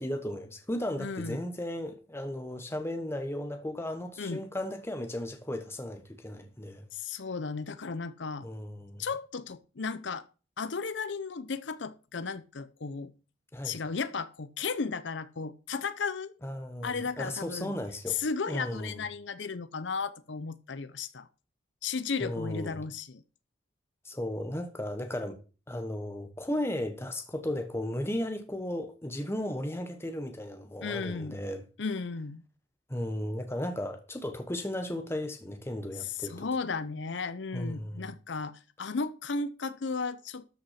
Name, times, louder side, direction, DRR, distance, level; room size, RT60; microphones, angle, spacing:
voice 1, 0.0-6.9 8.4-9.1 13.5-13.8 16.4-18.2 18.5-19.0 22.2-22.8 24.0-25.4 25.7-31.6 32.9-36.5 37.5-38.1, left 1 dB, 15° left, 1.1 m, -35 dB
voice 2, 1.0-1.4 4.2-4.4 6.9-8.5 9.0-10.2 10.6-13.1 13.6-16.3 16.8-17.8 18.1-21.3 21.8-23.2 30.8-31.4 31.8-32.4 36.0-40.5, left 4 dB, 70° left, 0.7 m, -34 dB
13.0 x 5.9 x 5.8 m
head